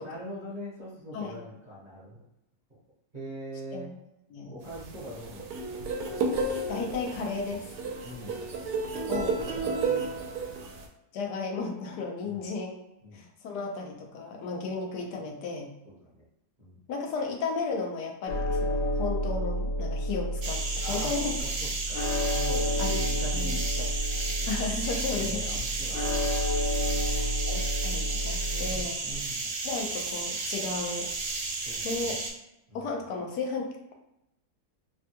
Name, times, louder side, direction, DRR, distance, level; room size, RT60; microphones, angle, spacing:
voice 1, 0.0-2.2 3.1-3.9 4.5-5.8 8.0-8.3 9.4-9.8 12.2-12.5 13.0-13.2 15.8-16.3 16.6-16.8 20.8-24.5 25.1-26.4 26.8-27.5 28.5-29.5 31.6-32.2 32.7-32.9, equal, 40° right, -9 dB, 0.7 m, -43 dB
sound 1, 4.7-10.9, right 3 dB, 90° right, 1.1 m, -32 dB
voice 2, 6.7-7.7 9.1-10.0 11.1-12.7 13.1-15.7 16.9-21.3 22.8-23.0 23.3-23.5 24.5-25.4 27.0-28.9 29.6-31.1 31.8-32.2 32.7-33.7, left 4 dB, 90° left, 1 dB, 1.2 m, -34 dB
sound 2, 18.3-28.8, equal, 70° left, 0.9 m, -30 dB
sound 3, 20.4-32.3, right 3 dB, 65° right, 0.9 m, -33 dB
3.4 x 2.2 x 2.7 m, 0.88 s
omnidirectional pair, 1.7 m